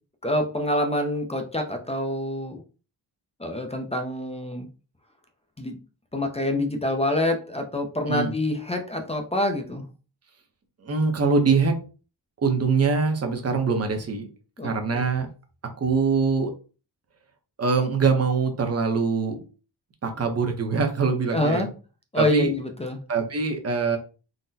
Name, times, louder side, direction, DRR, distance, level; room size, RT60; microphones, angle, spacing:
voice 1, 0.2-2.6 3.4-4.7 5.6-5.8 6.1-9.9 14.6-14.7 21.3-21.7 22.1-23.0, left 1 dB, 15° left, 3 dB, 0.4 m, -26 dB
voice 2, 10.8-11.8 12.4-14.3 14.6-15.3 15.8-16.5 17.6-19.4 20.0-21.7 22.1-22.5 23.1-24.0, right 4 dB, 35° right, 4 dB, 0.6 m, -23 dB
3.8 x 2.0 x 2.6 m, 0.35 s
wide cardioid pair, 140°, 44 cm